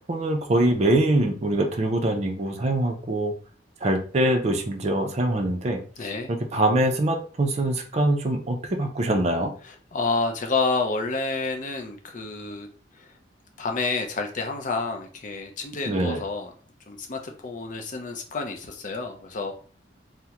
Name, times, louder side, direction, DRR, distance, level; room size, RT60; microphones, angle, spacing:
voice 1, 0.1-3.3 3.8-5.8 6.3-9.5 15.9-16.2, right 1 dB, 35° right, 3 dB, 0.5 m, -23 dB
voice 2, 6.0-6.3 9.6-12.7 12.9-13.1 13.6-16.5 16.9-19.5, left 3 dB, 45° left, 4 dB, 0.5 m, -29 dB
3.5 x 2.1 x 2.8 m, 0.41 s
head